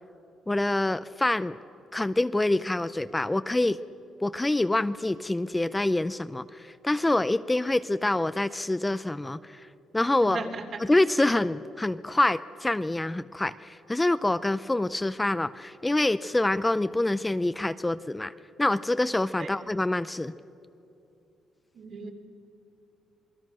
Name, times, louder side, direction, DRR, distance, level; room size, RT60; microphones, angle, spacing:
voice 1, 0.5-1.6 1.9-3.8 4.2-9.7 9.9-10.5 10.8-18.3 18.6-20.3, left 2 dB, 15° left, 13 dB, 0.5 m, -26 dB
voice 2, 10.2-10.8 19.4-19.5 21.7-22.1, right 4 dB, 60° right, 2 dB, 3.4 m, -36 dB
27.5 x 20.5 x 6.4 m, 2.7 s
cardioid pair, 90°, 0 cm